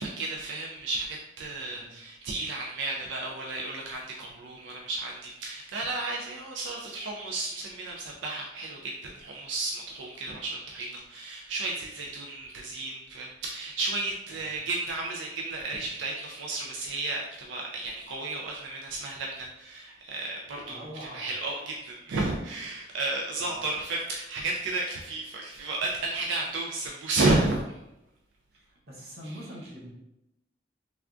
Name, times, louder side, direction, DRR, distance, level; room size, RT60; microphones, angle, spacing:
voice 1, 0.0-27.6, right 2 dB, 90° right, -1 dB, 0.4 m, -32 dB
voice 2, 1.6-1.9 14.3-14.6 20.7-21.3 23.3-23.6 28.5-29.9, equal, 55° right, -4 dB, 0.9 m, -44 dB
3.4 x 2.3 x 2.4 m, 0.90 s
head